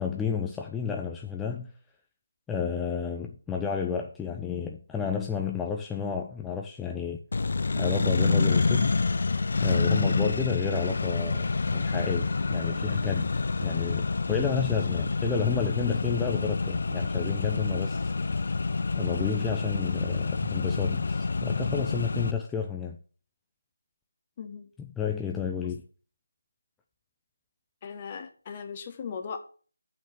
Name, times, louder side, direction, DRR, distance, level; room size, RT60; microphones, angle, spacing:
voice 1, 0.0-1.7 2.5-7.2 7.8-9.0 9.6-13.3 13.6-18.5 18.9-23.0 24.8-25.8, left 7 dB, 5° left, 0.5 m, -31 dB
Accelerating revving vroom, 7.3-22.3, left 4 dB, 50° left, 0.7 m, -27 dB
voice 2, 24.4-24.7 25.6-25.7 27.8-29.4, left 6 dB, 25° left, 1.1 m, -38 dB
7.2 x 5.7 x 7.2 m
figure-of-eight pair, 160°, 0 cm